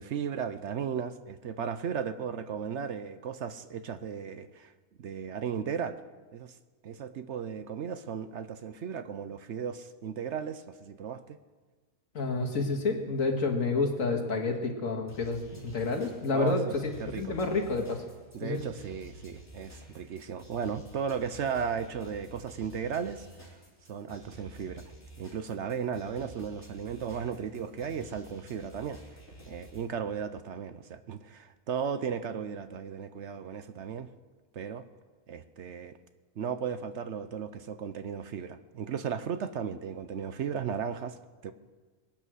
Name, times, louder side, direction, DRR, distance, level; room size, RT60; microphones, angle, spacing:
voice 1, 0.0-4.7 5.0-6.0 6.3-6.6 6.8-11.4 16.3-17.4 18.3-23.6 23.9-24.8 25.2-29.0 29.4-34.1 34.5-34.8 35.3-36.0 36.4-41.2 41.4-41.5, right 7 dB, 60° right, 11 dB, 0.9 m, -35 dB
voice 2, 12.1-16.8 17.2-18.0 18.4-18.6, left 3 dB, 70° left, 3 dB, 2.0 m, -29 dB
sound 1, 15.1-29.9, right 1 dB, 10° left, 3.5 m, -51 dB
22.5 x 9.1 x 6.3 m, 1.3 s
omnidirectional pair, 1.5 m